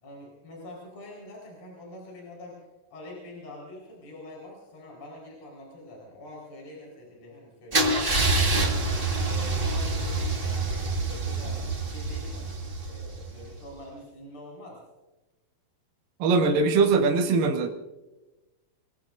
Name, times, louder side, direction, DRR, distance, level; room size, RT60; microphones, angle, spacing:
voice 1, 0.0-2.6 2.9-8.6 9.3-14.8, left 1 dB, 45° left, -3 dB, 5.6 m, -45 dB
Car / Engine starting / Idling, 7.7-13.6, right 2 dB, 35° right, 0.9 m, -27 dB
voice 2, 16.2-17.7, right 4 dB, 75° right, 2 dB, 2.9 m, -21 dB
27.5 x 20.5 x 2.6 m, 1.1 s
omnidirectional pair, 4.1 m